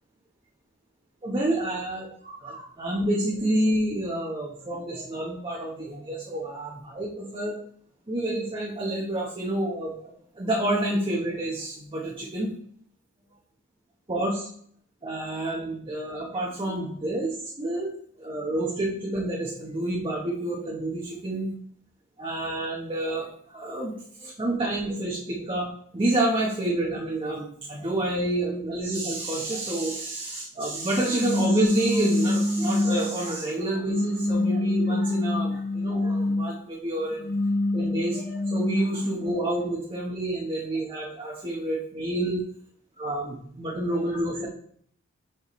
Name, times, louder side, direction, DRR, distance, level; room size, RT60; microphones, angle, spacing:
voice 1, 1.2-7.6 8.1-12.5 14.1-14.5 15.0-17.9 18.2-21.5 22.2-25.7 25.9-37.3 37.7-42.4 43.0-44.5, right 1 dB, 25° right, -2 dB, 0.9 m, -29 dB
sound 1, 31.2-33.2 33.8-36.5 37.1-39.4, left 2 dB, 45° left, 0.6 m, -26 dB
6.6 x 5.7 x 3.1 m, 0.62 s
head